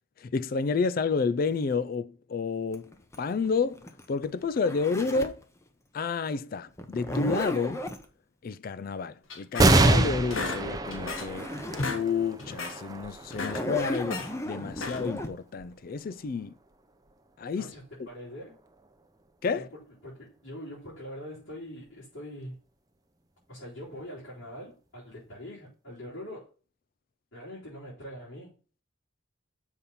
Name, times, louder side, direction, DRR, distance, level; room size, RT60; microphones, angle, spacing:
voice 1, 0.2-5.4 5.9-7.8 8.4-11.5 11.8-16.5 17.4-17.7 18.0-18.1 19.4-19.7, left 5 dB, 45° left, 0.3 m, -30 dB
Zipper (clothing), 2.7-5.4 6.8-8.0 10.6-10.7 11.0-12.0 12.4-12.5 13.3-15.3, equal, 15° left, 0.8 m, -35 dB
sound 1, 9.3-10.0 10.3-11.4 11.7-12.1 12.4-12.8 13.2-14.3 14.7-15.2, left 3 dB, 85° left, 1.1 m, -35 dB
sound 2, 9.6-16.5 17.1-17.2 18.3-18.9, right 2 dB, 20° right, 0.6 m, -27 dB
voice 2, 17.5-18.6 19.5-19.6 20.0-22.6 23.5-26.5 27.3-28.6, equal, 70° left, 4.4 m, -43 dB
7.0 x 4.2 x 5.3 m
head